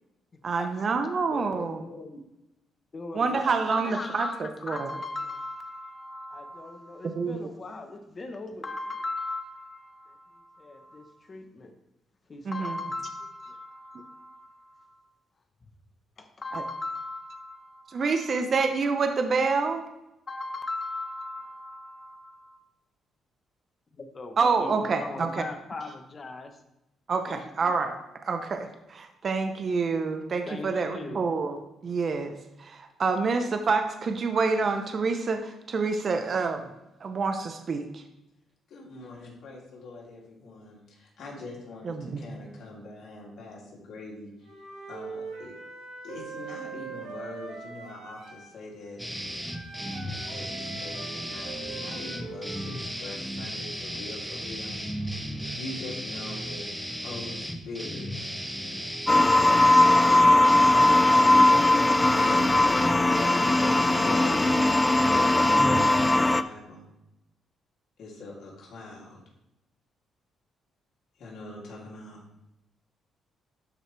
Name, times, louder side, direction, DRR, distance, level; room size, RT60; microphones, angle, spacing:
voice 1, 0.4-1.8 3.1-4.3 4.6-4.9 7.1-7.5 12.5-12.7 17.9-19.8 24.4-25.3 27.1-27.9 28.2-31.6 31.8-36.7 37.0-38.0 41.8-42.2, right 4 dB, 45° right, 6 dB, 0.7 m, -27 dB
voice 2, 1.3-2.2 2.9-3.4 3.7-11.7 12.3-15.1 16.2-18.5 20.3-22.6 23.9-24.3 24.6-26.5 27.3-27.7 30.5-31.2, left 2 dB, 35° left, 6 dB, 1.1 m, -38 dB
voice 3, 38.7-44.5 44.9-45.5 46.0-49.0 50.3-54.8 55.5-56.6 57.0-58.1 59.1-59.5 60.0-61.4 62.2-63.7 64.0-66.8 68.0-69.2 71.2-72.2, left 2 dB, 70° left, -3 dB, 2.8 m, -43 dB
Wind instrument woodwind instrument, 44.4-48.5 49.5-52.8, right 5 dB, 85° right, 2.2 m, -42 dB
sound 1, 49.0-66.2, equal, ahead, 0.9 m, -35 dB
sound 2, 59.1-66.4, left 2 dB, 20° left, 0.3 m, -19 dB
12.0 x 4.9 x 3.4 m, 0.90 s
cardioid pair, 90°, 0 cm